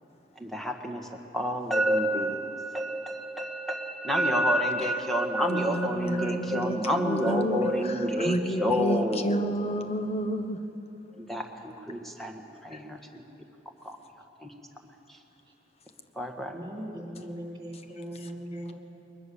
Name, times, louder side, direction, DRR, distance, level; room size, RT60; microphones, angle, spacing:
voice 1, 0.4-1.1 1.3-9.4 11.2-13.2 13.8-14.0 14.4-14.5 15.1-15.2 16.2-16.5, equal, ahead, 3 dB, 1.7 m, -29 dB
voice 2, 5.5-7.7 8.2-10.6, equal, 35° left, 8 dB, 1.1 m, -30 dB
voice 3, 16.5-18.7, equal, 25° right, -1 dB, 3.6 m, -39 dB
22.0 x 20.5 x 7.1 m, 3.0 s
head